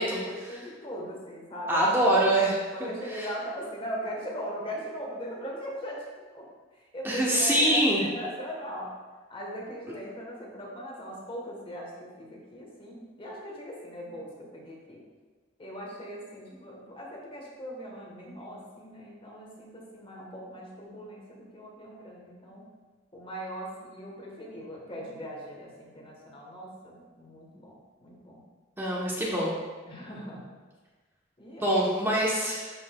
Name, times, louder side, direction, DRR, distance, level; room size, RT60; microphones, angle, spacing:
voice 1, 0.0-2.2 2.7-6.0 6.3-6.5 6.7-9.0 9.3-15.0 15.6-22.7 23.1-28.4 29.9-30.5 31.4-31.8, equal, 30° left, -2 dB, 1.2 m, -40 dB
voice 2, 1.7-2.5 2.8-3.3 7.0-8.0 28.8-29.5 31.6-32.7, right 1 dB, 10° right, -5 dB, 0.8 m, -24 dB
11.5 x 3.9 x 2.2 m, 1.4 s
head